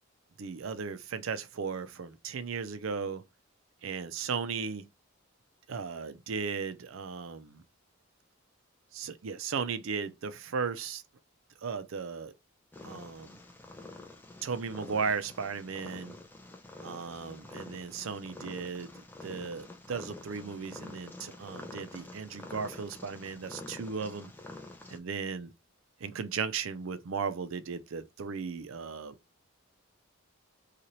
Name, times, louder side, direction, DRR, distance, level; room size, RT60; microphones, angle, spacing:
voice 1, 0.4-3.2 3.8-4.9 5.7-7.6 8.9-11.0 11.6-12.3 12.8-13.4 14.4-16.2 16.8-24.3 24.9-25.5 26.0-29.1, right 5 dB, 75° right, 0.4 m, -36 dB
Purr, 12.7-25.0, left 2 dB, 10° left, 0.4 m, -47 dB
2.7 x 2.4 x 2.9 m
head